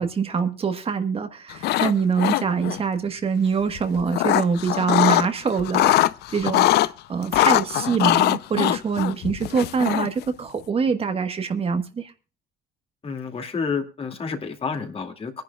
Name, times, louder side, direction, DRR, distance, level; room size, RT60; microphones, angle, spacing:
voice 1, 0.0-5.9 6.3-12.1, right 6 dB, 35° right, 8 dB, 1.4 m, -24 dB
sound 1, 1.5-1.9 2.2-2.8 3.8-5.3 5.6-6.9 7.3-10.2, left 15 dB, 75° left, 0.6 m, -21 dB
voice 2, 13.0-15.4, left 5 dB, 35° left, 6 dB, 2.5 m, -29 dB
23.5 x 10.5 x 2.4 m, 0.32 s
cardioid pair, 110°, 17 cm